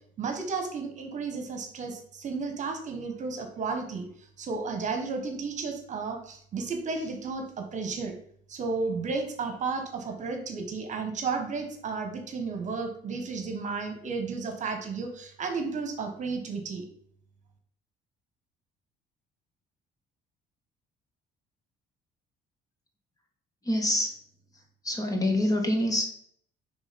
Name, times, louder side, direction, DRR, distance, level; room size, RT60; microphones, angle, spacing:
voice 1, 0.2-4.1 4.4-8.1 8.5-16.8, right 4 dB, 45° right, 5 dB, 1.2 m, -33 dB
voice 2, 23.6-24.1 24.8-26.0, left 1 dB, 20° left, 2 dB, 1.5 m, -26 dB
6.2 x 3.6 x 5.2 m, 0.63 s
cardioid pair, 110°, 17 cm